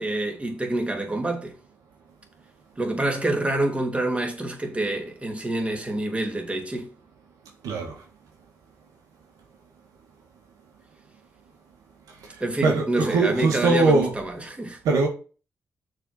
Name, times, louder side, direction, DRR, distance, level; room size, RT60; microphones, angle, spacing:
voice 1, 0.0-1.6 2.8-6.9 12.4-14.8, right 2 dB, 20° right, 2.8 m, -27 dB
voice 2, 7.6-8.0 12.2-14.2 14.8-15.1, right 3 dB, 90° right, 1.8 m, -22 dB
6.6 x 4.4 x 6.6 m
cardioid pair, 60°, 6 cm